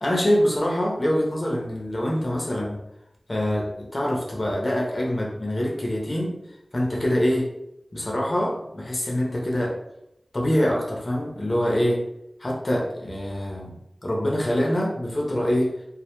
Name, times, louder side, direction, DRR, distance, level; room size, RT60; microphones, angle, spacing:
voice 1, 0.0-2.8 3.3-6.4 6.7-7.5 7.9-9.8 10.3-12.0 12.4-15.7, equal, 50° left, -2 dB, 0.6 m, -25 dB
2.1 x 2.1 x 2.9 m, 0.84 s
wide cardioid pair, 40°, 0 cm